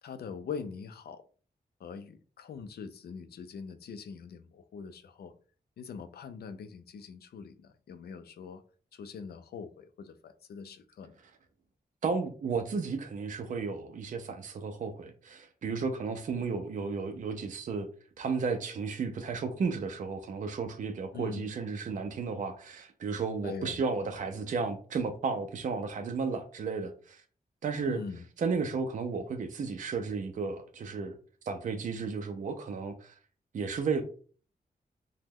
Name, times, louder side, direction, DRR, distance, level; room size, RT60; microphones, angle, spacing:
voice 1, 0.0-1.2 1.8-5.3 5.8-8.6 8.9-11.1 21.1-21.5 23.4-23.8 27.9-28.2, left 6 dB, 80° left, 0.4 m, -43 dB
voice 2, 12.0-17.9 18.2-27.2 27.6-28.0 28.4-31.1 31.4-33.1 33.5-34.0, right 4 dB, 55° right, 0.4 m, -33 dB
2.9 x 2.1 x 3.5 m
wide cardioid pair, 135°, 16 cm